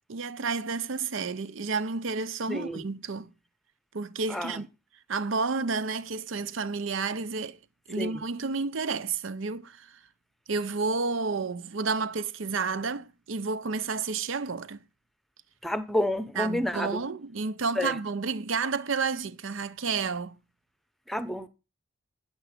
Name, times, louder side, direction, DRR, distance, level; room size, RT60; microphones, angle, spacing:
voice 1, 0.1-3.3 3.9-4.7 5.1-7.6 7.9-10.0 10.5-14.8 16.4-20.4, right 4 dB, 65° right, 0.7 m, -31 dB
voice 2, 2.5-2.8 4.3-4.6 8.0-8.2 15.6-17.0 17.8-18.0 21.1-21.5, left 1 dB, ahead, 0.8 m, -30 dB
9.1 x 7.1 x 6.5 m
head